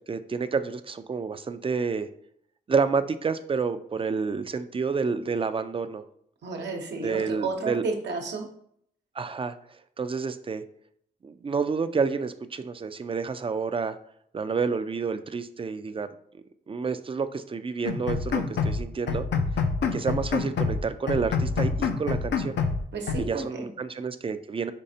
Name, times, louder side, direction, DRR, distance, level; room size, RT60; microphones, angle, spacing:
voice 1, 0.1-2.1 2.7-6.0 7.0-7.8 9.2-10.6 11.2-14.0 14.3-16.1 16.7-19.3 19.9-22.6 23.2-24.7, right 5 dB, 30° right, 11 dB, 0.4 m, -29 dB
voice 2, 6.4-8.5 22.9-23.7, right 3 dB, 75° right, 3 dB, 0.9 m, -32 dB
sound 1, 17.8-18.8 19.1-20.8 21.1-22.8 23.1-23.2, left 5 dB, 80° left, 0.5 m, -27 dB
5.3 x 3.2 x 2.8 m, 0.68 s
cardioid pair, 65°, 18 cm